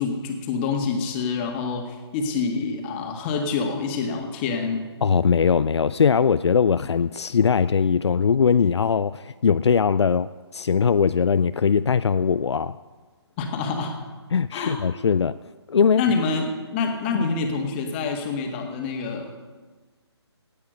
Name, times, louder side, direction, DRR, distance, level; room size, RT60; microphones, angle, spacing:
voice 1, 0.0-4.8 13.4-13.9 14.5-14.8 16.0-19.4, left 4 dB, 25° left, 3 dB, 1.7 m, -27 dB
voice 2, 5.0-12.8 14.3-15.4 15.7-16.0 17.1-17.3, left 6 dB, 70° left, 14 dB, 0.4 m, -20 dB
17.5 x 8.7 x 5.2 m, 1.4 s
figure-of-eight pair, 145°, 15 cm